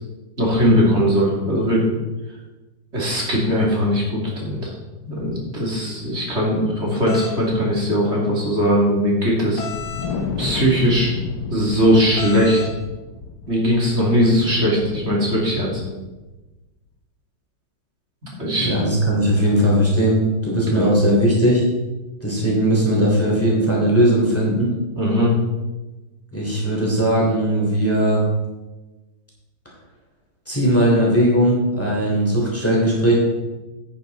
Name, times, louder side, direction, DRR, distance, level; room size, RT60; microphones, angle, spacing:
voice 1, 0.4-1.8 2.9-4.7 5.1-9.6 10.4-11.1 11.5-12.6 13.5-15.8 18.4-18.7 20.7-20.9 24.9-25.3, equal, 35° right, -3 dB, 2.9 m, -19 dB
sound 1, 7.1-7.4 9.6-10.1 12.2-12.7, left 6 dB, 85° left, 2.0 m, -32 dB
Wind, 9.7-16.3, left 4 dB, 65° left, 1.4 m, -31 dB
voice 2, 18.6-21.6 22.2-24.7 26.3-28.2 30.5-33.2, right 1 dB, 5° left, -4 dB, 3.0 m, -18 dB
10.0 x 9.0 x 4.0 m, 1.1 s
omnidirectional pair, 2.1 m